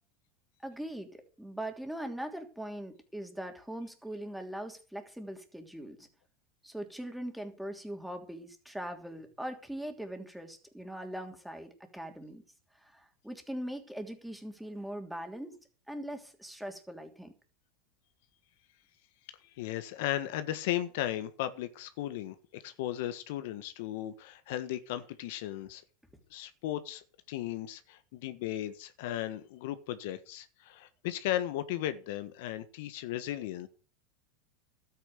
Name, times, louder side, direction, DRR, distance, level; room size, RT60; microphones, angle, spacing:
voice 1, 0.6-6.1 6.6-12.4 12.8-15.6 15.9-17.3, right 1 dB, ahead, 3.1 m, -41 dB
voice 2, 19.6-25.8 26.3-33.7, left 13 dB, 70° left, 1.4 m, -36 dB
12.5 x 9.1 x 6.7 m
supercardioid pair, 115°, 0 cm